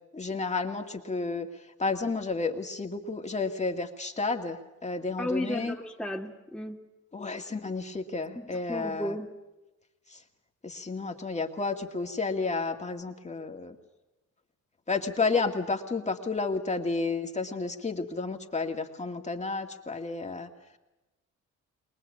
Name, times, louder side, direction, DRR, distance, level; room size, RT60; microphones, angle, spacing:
voice 1, 0.1-1.5 1.8-5.8 7.1-9.2 10.1-10.2 10.6-13.8 14.9-20.5, left 3 dB, 25° left, 3 dB, 2.3 m, -31 dB
voice 2, 5.2-6.8 8.4-9.3, left 1 dB, 5° left, -2 dB, 1.8 m, -34 dB
23.0 x 19.5 x 8.6 m, 1.0 s
cardioid pair, 90°, 30 cm